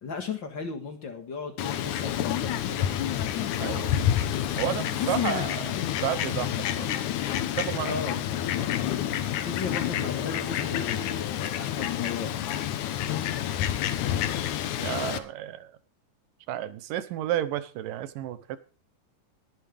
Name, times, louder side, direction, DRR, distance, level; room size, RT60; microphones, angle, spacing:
voice 1, 0.0-2.9 4.7-5.5 7.8-8.6 9.3-12.5, left 6 dB, 40° left, 5 dB, 2.1 m, -35 dB
Fowl, 1.6-15.2, left 11 dB, 70° left, 2.3 m, -29 dB
voice 2, 3.6-3.9 4.6-5.6 6.0-6.9 7.6-8.2 14.8-15.7 16.5-18.6, right 11 dB, 85° right, 13 dB, 2.6 m, -31 dB
20.5 x 9.5 x 3.4 m, 0.34 s
omnidirectional pair, 3.8 m